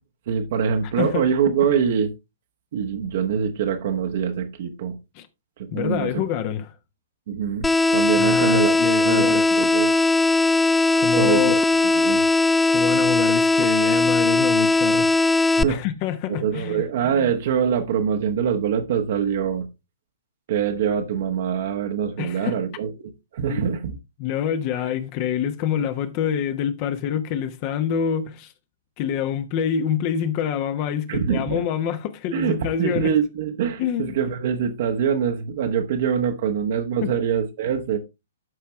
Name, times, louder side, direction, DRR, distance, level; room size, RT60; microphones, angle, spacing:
voice 1, 0.3-2.1 2.7-5.0 5.6-6.1 7.3-8.8 9.0-9.9 11.2-11.5 12.0-12.2 15.6-15.8 16.3-19.7 20.5-22.9 23.3-23.9 31.1-31.6 32.3-38.0, right 7 dB, 45° right, 1.4 m, -24 dB
voice 2, 5.7-6.7 8.2-9.5 11.0-11.6 12.7-15.1 15.4-16.9 22.2-22.6 23.4-23.6 24.2-28.5 29.0-33.2 33.8-34.2 37.0-37.1, left 9 dB, 35° left, 1.1 m, -26 dB
sound 1, 7.6-15.6, left 2 dB, 5° left, 0.4 m, -19 dB
12.5 x 5.8 x 3.2 m
figure-of-eight pair, 115°, 0 cm